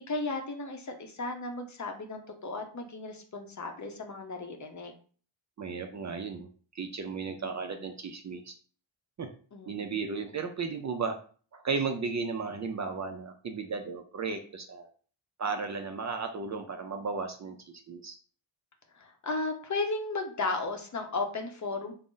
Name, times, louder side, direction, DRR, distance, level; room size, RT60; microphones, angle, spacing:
voice 1, 0.1-4.9 7.4-7.8 9.5-10.0 18.9-21.9, left 3 dB, 40° left, 3 dB, 0.7 m, -35 dB
voice 2, 5.6-6.5 6.7-8.5 9.2-9.3 9.7-11.2 11.5-14.9 15.4-18.2, right 4 dB, 40° right, 5 dB, 0.4 m, -34 dB
3.8 x 2.0 x 3.7 m, 0.42 s
wide cardioid pair, 100°, 46 cm